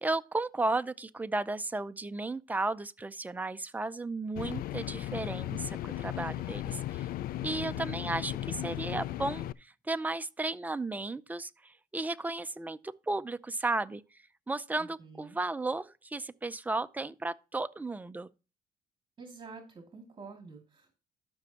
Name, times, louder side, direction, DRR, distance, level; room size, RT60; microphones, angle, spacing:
voice 1, 0.0-7.1 7.4-9.5 9.9-14.0 14.5-18.3, right 2 dB, 10° right, 0.5 m, -34 dB
sound 1, 4.3-9.5, left 14 dB, 60° left, 0.4 m, -36 dB
voice 2, 7.3-7.8 14.8-15.4 19.2-20.9, right 4 dB, 30° right, 2.5 m, -49 dB
13.0 x 6.2 x 2.9 m
cardioid pair, 110°, 17 cm